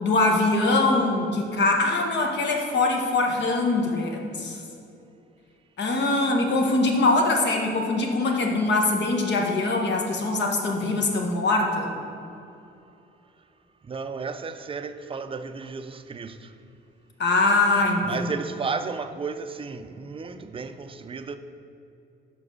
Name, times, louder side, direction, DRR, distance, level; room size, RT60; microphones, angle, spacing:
voice 1, 0.0-4.6 5.8-11.9 17.2-18.3, left 2 dB, 60° left, 1 dB, 1.2 m, -23 dB
voice 2, 13.9-16.5 18.0-21.4, right 5 dB, 25° right, 9 dB, 0.4 m, -33 dB
5.3 x 4.9 x 6.2 m, 2.7 s
cardioid pair, 90°, 20 cm